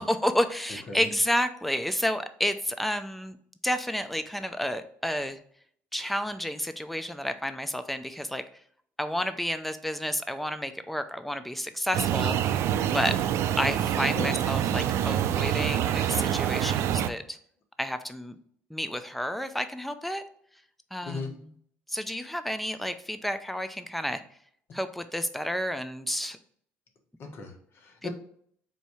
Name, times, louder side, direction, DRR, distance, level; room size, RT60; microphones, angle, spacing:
voice 1, 0.0-3.4 3.6-5.4 5.9-8.4 9.0-12.6 12.9-13.2 13.6-17.4 17.8-18.4 18.7-20.2 20.9-21.5 21.9-24.2 24.7-26.4 28.0-28.1, equal, ahead, 10 dB, 0.4 m, -30 dB
sound 1, 11.9-17.1, right 10 dB, 65° right, 0.3 m, -26 dB
voice 2, 27.2-28.1, left 3 dB, 50° left, 3 dB, 1.1 m, -37 dB
4.1 x 2.7 x 4.7 m, 0.64 s
cardioid pair, 115°, 5 cm